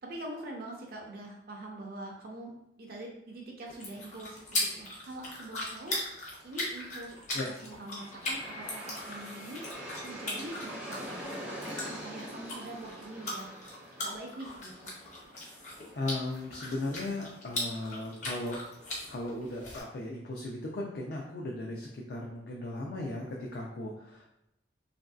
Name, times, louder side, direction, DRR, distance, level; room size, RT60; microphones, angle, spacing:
voice 1, 0.0-2.5 2.8-6.0 6.4-7.1 7.5-11.6 11.9-13.5 14.0-14.9, right 1 dB, 55° right, 0 dB, 0.5 m, -44 dB
sound 1, 3.7-19.8, left 1 dB, 40° left, 0.8 m, -39 dB
Aircraft, 7.3-18.3, equal, 5° right, 0.5 m, -45 dB
voice 2, 15.9-18.6 19.1-24.3, left 2 dB, 60° left, -2 dB, 0.4 m, -37 dB
3.0 x 2.5 x 2.3 m, 0.82 s
head